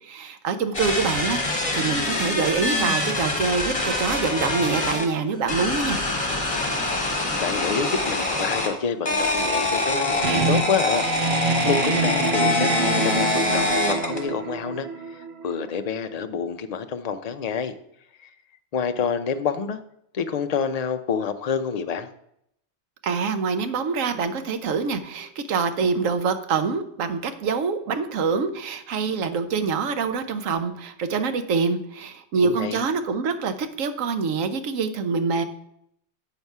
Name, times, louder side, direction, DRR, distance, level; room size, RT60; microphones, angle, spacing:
voice 1, 0.0-6.0 23.0-35.4, right 5 dB, 90° right, 9 dB, 1.1 m, -25 dB
sound 1, 0.7-5.1 5.5-8.7 9.1-14.2, left 2 dB, 25° left, 1.4 m, -25 dB
voice 2, 7.4-17.7 18.2-18.3 18.7-19.8 20.1-22.1 32.4-32.8, left 6 dB, 65° left, 8 dB, 0.4 m, -28 dB
sound 2, 10.2-15.7, right 4 dB, 60° right, 0.8 m, -26 dB
8.0 x 4.6 x 5.4 m, 0.73 s
omnidirectional pair, 1.3 m